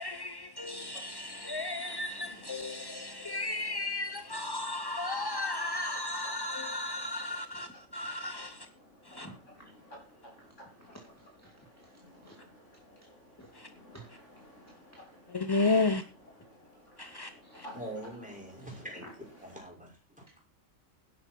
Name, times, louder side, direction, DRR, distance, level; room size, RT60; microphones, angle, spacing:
voice 1, 0.0-8.7 9.0-9.3 13.5-13.7 15.3-16.0 17.0-17.7, left 2 dB, 30° left, 0.5 m, -33 dB
sound 1, 0.8-19.6, equal, 65° left, 4.9 m, -56 dB
voice 2, 9.1-9.7 10.1-10.2 10.6-11.9 12.2-12.4 13.4-13.6 13.9-14.1 17.4-17.7 18.7-18.8 19.0-19.1, right 1 dB, 10° left, 2.4 m, -53 dB
voice 3, 17.7-19.1 19.4-20.4, right 1 dB, 5° right, 5.7 m, -44 dB
12.0 x 10.5 x 4.6 m
omnidirectional pair, 1.4 m